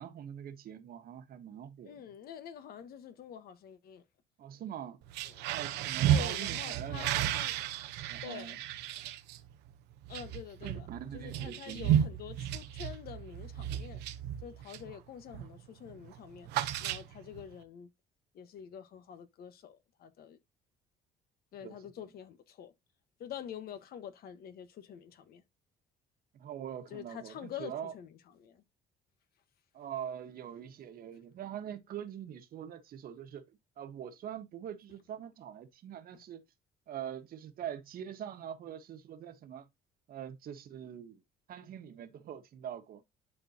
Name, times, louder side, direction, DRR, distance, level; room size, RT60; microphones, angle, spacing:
voice 1, 0.0-2.0 4.4-5.0 5.5-7.2 8.1-8.6 10.6-12.1 21.6-21.8 26.4-27.9 29.7-36.4 36.9-39.7 40.1-41.2 41.5-43.0, right 9 dB, 60° right, 1.4 m, -43 dB
voice 2, 1.8-4.0 5.2-5.5 6.1-7.6 8.2-8.6 10.1-10.9 11.1-14.0 14.4-16.5 16.8-17.9 18.3-20.4 21.5-22.7 23.2-25.4 26.9-28.6, left 9 dB, 65° left, 1.4 m, -46 dB
sound 1, 5.0-15.0 15.3-15.6 15.9-17.4, right 10 dB, 85° right, 0.9 m, -33 dB
11.0 x 4.4 x 2.9 m
cardioid pair, 110°, 17 cm